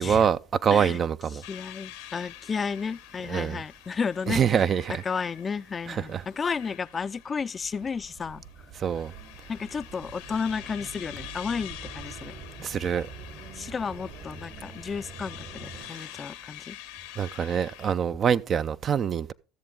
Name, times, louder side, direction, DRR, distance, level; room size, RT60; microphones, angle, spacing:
voice 1, 0.0-1.4 3.3-3.6 4.3-5.0 5.9-6.2 8.8-9.1 12.6-13.1 15.8-16.1 17.2-19.3, right 8 dB, 45° right, 0.4 m, -25 dB
voice 2, 1.3-4.4 5.0-8.4 9.5-12.3 13.5-16.8, left 5 dB, 30° left, 0.4 m, -32 dB
sound 1, 1.4-17.9, left 14 dB, 80° left, 1.0 m, -46 dB
sound 2, 7.5-15.9, right 4 dB, 70° right, 3.2 m, -45 dB
13.5 x 6.9 x 3.6 m
hypercardioid pair, 80°, 0 cm